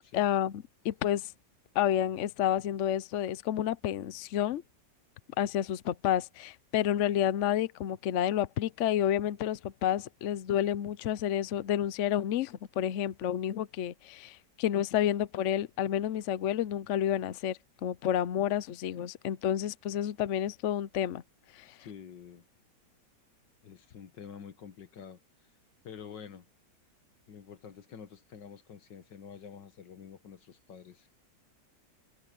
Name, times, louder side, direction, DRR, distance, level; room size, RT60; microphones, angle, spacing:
voice 1, 0.1-1.3 1.7-4.6 5.4-21.2 21.6-21.7, left 11 dB, 60° left, 0.8 m, -30 dB
voice 2, 21.6-22.4 23.6-25.2 25.8-26.5 27.3-31.1, left 7 dB, 75° left, 2.0 m, -48 dB
omnidirectional pair, 1.9 m